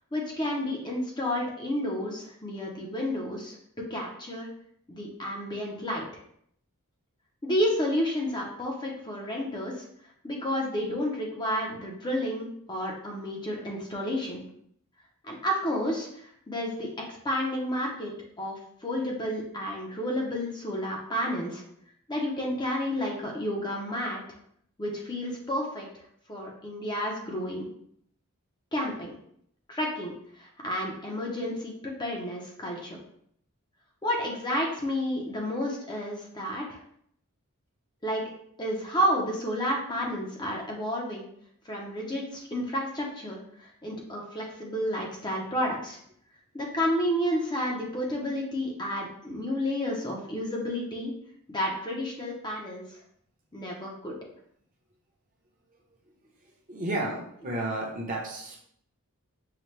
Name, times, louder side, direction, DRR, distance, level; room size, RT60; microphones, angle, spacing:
voice 1, 0.1-3.6 3.9-4.5 4.9-6.1 7.4-9.8 10.2-14.4 15.2-16.9 17.2-18.1 18.4-21.6 22.1-24.2 24.8-25.9 26.3-27.6 28.7-29.1 29.7-33.0 34.0-36.8 38.0-38.2 38.6-41.3 41.6-46.0 46.5-51.1 51.5-53.0 53.5-54.1, equal, 20° left, -2 dB, 0.6 m, -31 dB
voice 2, 56.7-58.6, right 1 dB, 35° right, -2 dB, 0.8 m, -32 dB
5.7 x 2.2 x 3.2 m, 0.67 s
head